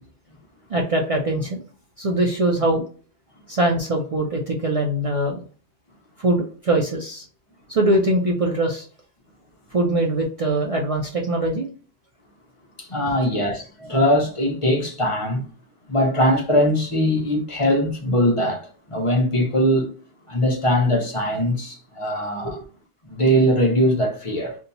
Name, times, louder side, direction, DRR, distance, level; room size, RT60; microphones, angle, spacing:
voice 1, 0.7-1.6 2.0-2.8 3.5-5.4 6.2-7.3 7.7-8.9 9.7-11.7 22.4-22.5, right 1 dB, 55° right, 0.4 m, -22 dB
voice 2, 12.8-15.4 15.9-19.9 20.3-22.6 23.1-24.6, equal, 35° left, 0.7 m, -21 dB
2.8 x 2.2 x 3.9 m
omnidirectional pair, 1.2 m